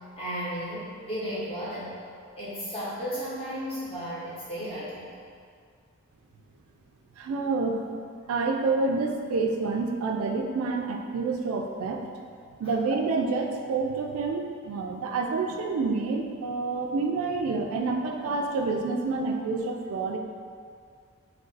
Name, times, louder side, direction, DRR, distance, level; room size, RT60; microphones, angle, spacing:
voice 1, 0.2-1.9 2.4-5.1 12.6-12.7, equal, 25° left, -10 dB, 0.9 m, -34 dB
voice 2, 7.2-7.9 8.3-12.0 12.6-20.2, right 3 dB, 80° right, 3 dB, 0.3 m, -28 dB
2.4 x 2.3 x 3.8 m, 2.2 s
head